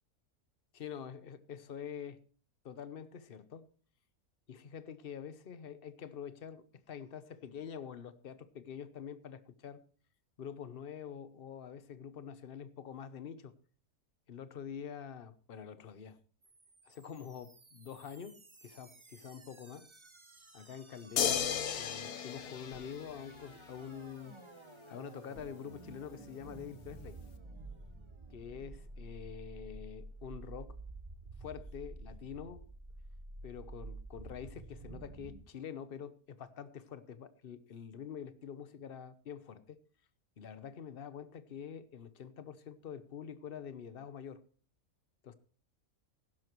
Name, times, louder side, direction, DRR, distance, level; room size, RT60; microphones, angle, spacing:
voice 1, 0.7-2.2 2.6-3.7 4.5-9.8 10.4-13.5 14.3-16.2 16.9-19.9 20.5-21.5 21.8-24.4 24.9-27.2 28.3-30.8 31.4-32.7 33.4-39.8 40.4-44.4 45.2-45.3, left 8 dB, 45° left, 0.9 m, -46 dB
sound 1, 16.4-35.4, right 2 dB, 20° right, 1.0 m, -51 dB
sound 2, 21.2-23.6 25.4-25.5, left 8 dB, 85° left, 1.5 m, -34 dB
15.5 x 12.0 x 3.1 m
omnidirectional pair, 1.6 m